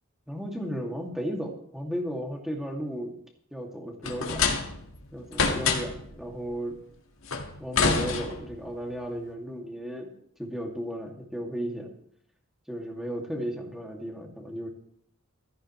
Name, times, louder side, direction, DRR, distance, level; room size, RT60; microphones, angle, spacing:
voice 1, 0.3-3.1 3.5-4.7 5.1-6.8 7.6-10.1 10.4-11.9 12.7-14.7, equal, ahead, 0 dB, 2.2 m, -35 dB
sound 1, 4.0-5.0 5.3-6.1 7.3-8.7, left 5 dB, 75° left, 1.7 m, -26 dB
15.5 x 14.0 x 3.1 m, 0.66 s
head